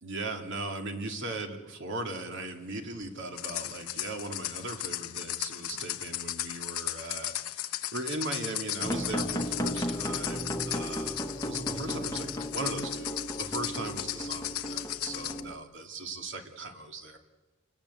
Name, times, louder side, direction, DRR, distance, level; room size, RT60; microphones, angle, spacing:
voice 1, 0.0-17.2, right 2 dB, 55° right, 4 dB, 2.5 m, -38 dB
sound 1, 3.4-15.4, left 13 dB, 85° left, 1.0 m, -36 dB
sound 2, 8.8-15.5, equal, 15° left, 1.2 m, -35 dB
29.0 x 19.0 x 8.4 m, 1.3 s
head